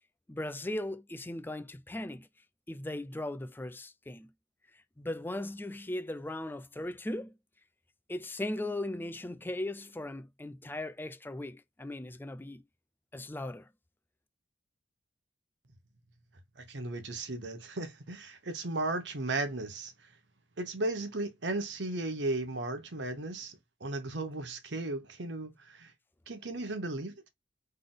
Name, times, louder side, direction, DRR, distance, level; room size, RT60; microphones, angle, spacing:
voice 1, 0.3-2.3 2.7-4.3 4.7-7.3 8.1-12.6 13.1-13.7, left 1 dB, 10° left, 0.4 m, -38 dB
voice 2, 16.6-19.9 20.6-25.9 26.3-27.3, right 2 dB, 70° right, 1.0 m, -35 dB
3.9 x 3.4 x 3.8 m
head